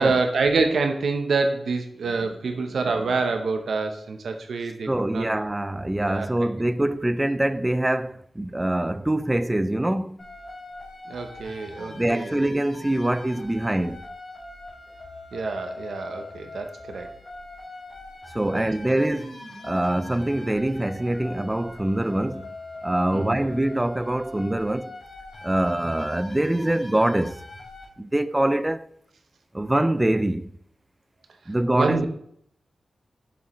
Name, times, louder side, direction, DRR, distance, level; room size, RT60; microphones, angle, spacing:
voice 1, 0.0-5.3 6.0-6.3 11.1-12.3 15.3-17.1 18.5-18.6 23.1-23.4 31.7-32.1, right 4 dB, 75° right, 0.7 m, -26 dB
voice 2, 4.9-10.2 11.9-14.1 18.3-22.5 22.8-25.0 25.4-27.4 28.0-28.9 29.5-30.5 31.5-32.0, right 1 dB, 10° right, 0.3 m, -24 dB
sound 1, 10.2-27.8, left 2 dB, 45° left, 3.1 m, -42 dB
7.1 x 6.5 x 3.0 m
wide cardioid pair, 125°, 0 cm